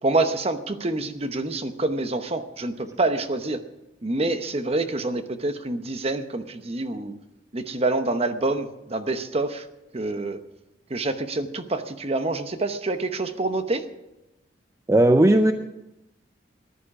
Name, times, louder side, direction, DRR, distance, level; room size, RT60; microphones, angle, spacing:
voice 1, 0.0-3.6 4.0-7.1 7.5-9.7 9.9-10.4 10.9-13.8, right 2 dB, 35° right, 9 dB, 0.9 m, -26 dB
voice 2, 14.9-15.5, right 1 dB, 15° right, 8 dB, 0.5 m, -16 dB
14.5 x 11.5 x 6.0 m, 0.95 s
head